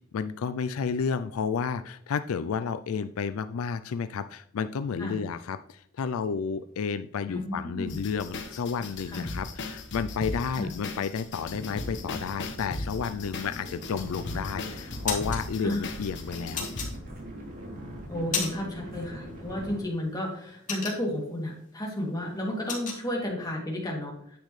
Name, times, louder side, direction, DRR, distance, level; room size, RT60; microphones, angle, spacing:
voice 1, 0.1-16.7, left 6 dB, 80° left, 11 dB, 0.4 m, -31 dB
voice 2, 7.3-8.0 9.1-9.3 10.6-10.7 15.6-15.8 18.1-24.4, left 1 dB, 20° left, -2 dB, 2.6 m, -32 dB
sound 1, 7.9-16.9, left 2 dB, 60° left, 1.3 m, -38 dB
sound 2, 11.5-19.8, right 1 dB, 45° right, 3.0 m, -42 dB
sound 3, 15.1-15.4 16.6-17.4 17.9-18.8 19.1-19.3 19.7-21.4 21.8-22.0 22.2-23.0, left 5 dB, 40° left, 2.4 m, -33 dB
10.5 x 8.2 x 3.2 m, 0.69 s
head